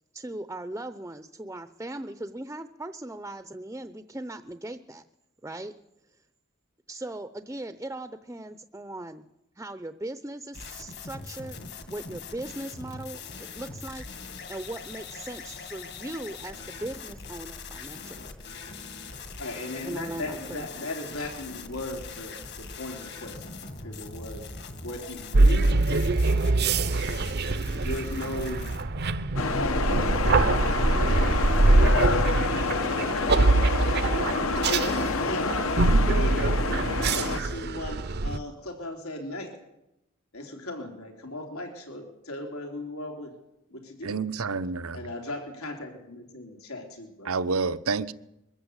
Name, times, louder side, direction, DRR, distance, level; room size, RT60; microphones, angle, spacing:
voice 1, 0.1-5.0 5.4-5.7 6.9-9.2 9.6-11.6 11.9-14.1 14.5-18.3 19.8-20.9, right 1 dB, 10° right, 0.7 m, -38 dB
sound 1, 10.5-28.8, left 4 dB, 55° left, 2.1 m, -41 dB
voice 2, 19.4-24.5 24.8-26.4 26.8-27.0 27.7-28.8 29.4-30.6 30.9-32.2 33.1-33.8 34.6-39.5 40.3-43.3 43.7-44.1 44.9-47.3, left 1 dB, 90° left, 3.4 m, -37 dB
sound 2, 25.3-38.4, right 2 dB, 50° right, 0.7 m, -24 dB
sound 3, 29.4-37.4, left 4 dB, 70° left, 1.3 m, -28 dB
voice 3, 44.0-45.1 47.2-48.1, right 4 dB, 80° right, 1.0 m, -29 dB
22.5 x 14.5 x 8.1 m
head